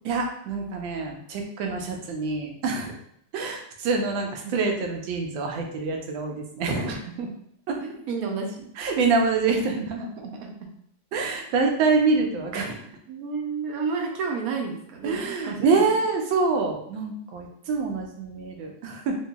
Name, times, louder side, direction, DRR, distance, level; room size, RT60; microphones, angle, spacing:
voice 1, 0.0-2.9 3.3-6.9 7.7-7.8 8.8-10.0 11.1-12.8 15.0-19.1, right 4 dB, 85° right, 2 dB, 1.4 m, -26 dB
voice 2, 6.9-7.3 7.8-8.7 10.0-10.5 13.1-15.9, right 5 dB, 65° right, 2 dB, 0.9 m, -31 dB
4.6 x 2.6 x 2.3 m, 0.69 s
omnidirectional pair, 2.1 m